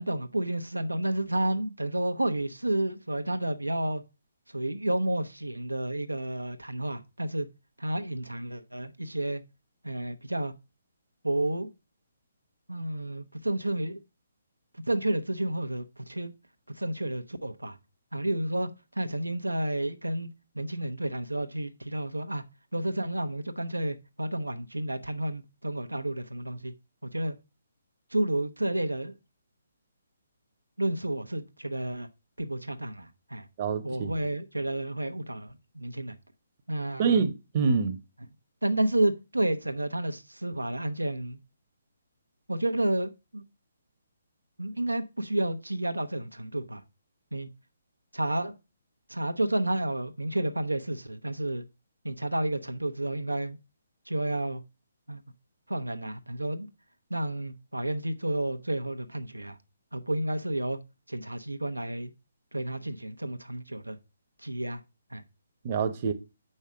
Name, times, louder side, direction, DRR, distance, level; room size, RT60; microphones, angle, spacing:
voice 1, 0.0-4.0 4.5-7.5 7.8-9.4 9.8-10.5 11.2-11.7 12.7-14.0 14.9-16.3 16.7-17.8 18.1-20.3 20.5-22.4 22.7-26.7 27.1-27.4 28.1-29.1 30.8-32.1 32.4-33.5 33.8-36.2 36.7-37.2 38.6-41.4 42.5-43.4 44.6-46.8 47.3-47.5 48.1-48.5 49.1-51.6 52.0-53.6 54.1-54.6 55.1-55.2 55.7-56.7 57.1-59.6 59.9-60.8 61.1-62.1 62.5-64.0 64.4-64.8 65.1-65.2, right 1 dB, 85° right, 0.9 m, -31 dB
voice 2, 33.6-34.1 37.0-38.0 65.6-66.1, right 5 dB, 35° right, 1.0 m, -26 dB
7.1 x 5.5 x 4.9 m
figure-of-eight pair, 140°, 0 cm